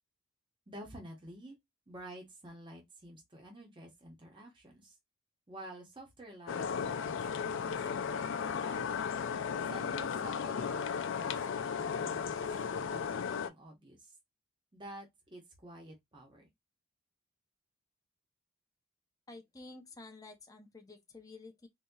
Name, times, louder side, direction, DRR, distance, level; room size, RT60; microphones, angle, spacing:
voice 1, 0.7-1.6 1.9-5.0 5.5-9.0 9.7-14.2 14.7-16.5, right 1 dB, 25° right, 1.1 m, -51 dB
sound 1, 6.5-13.5, left 6 dB, 60° left, 0.4 m, -35 dB
voice 2, 19.3-21.7, left 3 dB, 15° left, 0.6 m, -51 dB
4.0 x 2.8 x 2.3 m
head